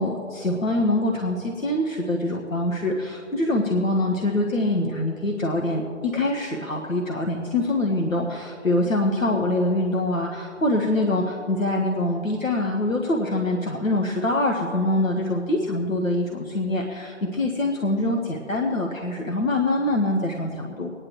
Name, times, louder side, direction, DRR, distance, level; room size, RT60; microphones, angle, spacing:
voice 1, 0.0-20.9, left 1 dB, 90° left, 1 dB, 1.5 m, -24 dB
25.5 x 9.9 x 3.1 m, 2.5 s
figure-of-eight pair, 155°, 39 cm